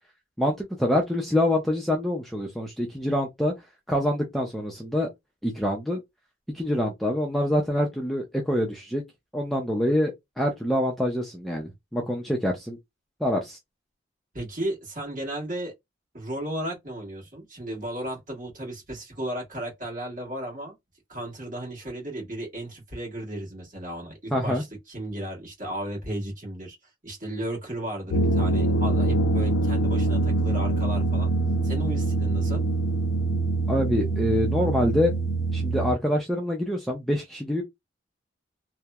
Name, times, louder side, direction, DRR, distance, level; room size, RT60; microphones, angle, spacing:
voice 1, 0.4-3.5 3.9-5.1 5.4-6.0 6.5-9.0 9.3-12.8 13.2-13.6 24.3-24.6 33.7-35.1 35.5-37.6, left 1 dB, ahead, 0.4 m, -25 dB
voice 2, 14.3-15.7 16.1-20.8 21.1-26.8 27.0-31.3 31.6-32.6, right 1 dB, 40° right, 1.4 m, -34 dB
sound 1, 28.1-35.9, right 2 dB, 75° left, 0.4 m, -24 dB
2.8 x 2.0 x 2.3 m
head